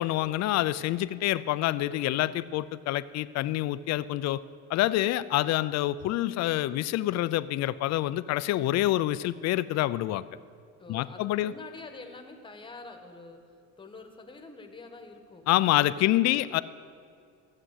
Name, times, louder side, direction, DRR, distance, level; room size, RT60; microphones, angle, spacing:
voice 1, 0.0-4.4 4.7-10.2 10.9-11.5 15.5-16.6, left 15 dB, 60° left, 16 dB, 0.5 m, -27 dB
voice 2, 10.8-13.4 13.8-16.4, left 3 dB, 15° left, 5 dB, 1.2 m, -47 dB
15.0 x 7.5 x 8.1 m, 2.3 s
cardioid pair, 150°, 31 cm